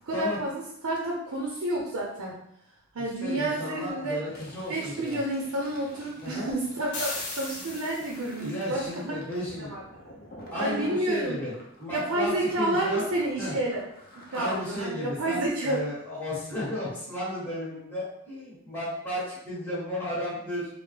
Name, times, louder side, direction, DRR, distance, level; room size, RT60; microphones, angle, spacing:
voice 1, 0.0-2.4 2.9-4.2 4.7-8.9 9.5-9.8 10.6-11.4 11.9-13.8 14.3-15.8, right 1 dB, 75° right, -2 dB, 0.6 m, -29 dB
voice 2, 3.2-5.2 6.2-6.5 7.6-7.7 8.3-9.7 10.1-10.2 10.5-11.5 11.8-13.0 13.4-13.5 14.3-20.7, left 1 dB, 10° left, -10 dB, 1.1 m, -34 dB
Fill (with liquid), 4.3-11.0 11.5-14.8, equal, 45° left, 0.6 m, -49 dB
sound 1, 6.9-8.5, left 2 dB, 85° left, 0.8 m, -36 dB
3.3 x 2.0 x 3.3 m, 0.74 s
head